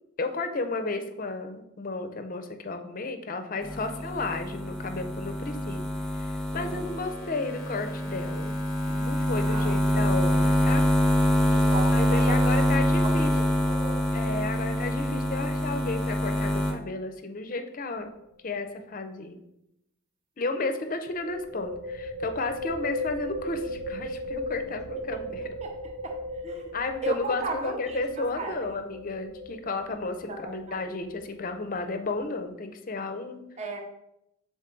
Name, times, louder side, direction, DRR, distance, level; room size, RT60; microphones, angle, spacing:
voice 1, 0.2-5.8 6.1-8.5 8.9-10.8 11.9-13.3 14.1-18.1 18.4-19.4 20.4-25.4 26.7-33.4, left 3 dB, 40° left, 8 dB, 0.5 m, -33 dB
sound 1, 3.6-16.7, equal, 5° left, 0.9 m, -25 dB
voice 2, 6.6-6.9 9.4-9.8 11.5-14.1 25.1-26.7 27.0-28.7 30.3-30.8 33.6-33.8, right 3 dB, 30° right, 2 dB, 0.6 m, -37 dB
sound 2, 18.0-18.2 18.5-18.6 21.1-32.4, left 1 dB, 50° right, 1.1 m, -38 dB
6.8 x 3.9 x 3.8 m, 0.84 s
head